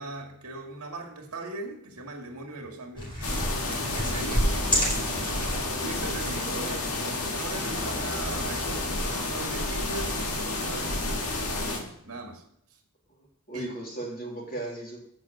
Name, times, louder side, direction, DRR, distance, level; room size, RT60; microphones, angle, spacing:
voice 1, 0.0-3.1 3.7-5.3 5.8-6.8 7.3-12.4 13.5-13.7, right 2 dB, 70° right, 2 dB, 2.0 m, -39 dB
sound 1, 3.0-11.7, equal, 25° left, 3.3 m, -32 dB
sound 2, 3.2-11.8, left 2 dB, 90° left, 1.7 m, -31 dB
voice 2, 6.5-7.0 13.5-15.0, right 2 dB, 40° left, -3 dB, 3.2 m, -37 dB
7.4 x 6.1 x 7.4 m, 0.75 s
head